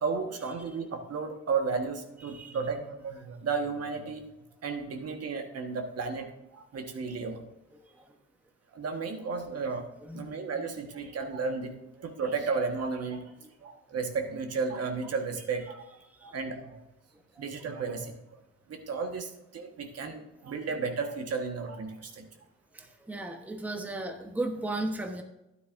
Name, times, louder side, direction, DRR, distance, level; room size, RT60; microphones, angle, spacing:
voice 1, 0.0-4.2 4.6-7.5 8.7-9.9 10.1-13.3 13.6-15.9 16.2-16.8 17.4-18.2 18.7-22.3, right 4 dB, 55° right, 4 dB, 1.4 m, -33 dB
voice 2, 2.2-2.6 10.0-10.3 17.4-17.5 22.7-25.2, right 2 dB, 5° right, 4 dB, 1.1 m, -35 dB
12.5 x 9.6 x 2.6 m, 0.92 s
cardioid pair, 90°, 30 cm